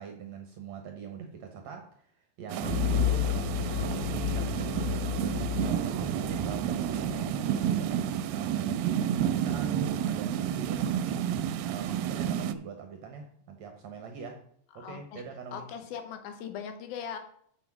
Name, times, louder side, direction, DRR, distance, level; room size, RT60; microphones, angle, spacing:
voice 1, 0.0-11.2 11.6-14.4 14.8-15.7, right 6 dB, 65° right, 4 dB, 1.8 m, -43 dB
sound 1, 2.5-12.5, right 9 dB, 85° right, 2.4 m, -30 dB
sound 2, 2.6-7.4, left 8 dB, 60° left, 0.8 m, -31 dB
voice 2, 14.8-15.2 15.5-17.2, left 8 dB, 85° left, 7 dB, 2.9 m, -39 dB
7.1 x 7.1 x 5.8 m, 0.65 s
omnidirectional pair, 4.2 m